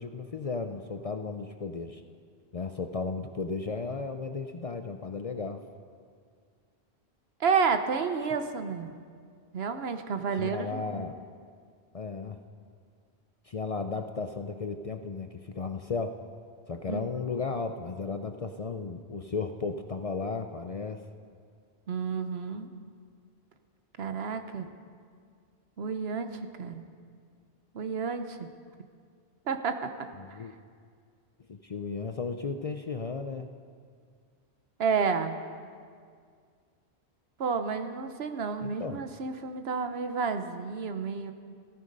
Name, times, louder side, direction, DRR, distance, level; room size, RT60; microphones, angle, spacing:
voice 1, 0.0-2.0 2.5-5.6 10.3-11.2 11.9-12.4 13.4-16.2 16.7-21.0 30.2-30.5 31.5-33.5 38.6-39.1, left 4 dB, 45° left, 7 dB, 0.5 m, -35 dB
voice 2, 7.4-8.9 9.5-11.1 16.9-17.1 21.9-22.7 24.0-24.7 25.8-26.8 27.7-28.5 29.5-29.9 30.3-30.4 34.8-35.4 37.4-41.3, right 5 dB, 75° right, 8 dB, 1.1 m, -30 dB
15.0 x 13.5 x 5.3 m, 2.1 s
omnidirectional pair, 1.1 m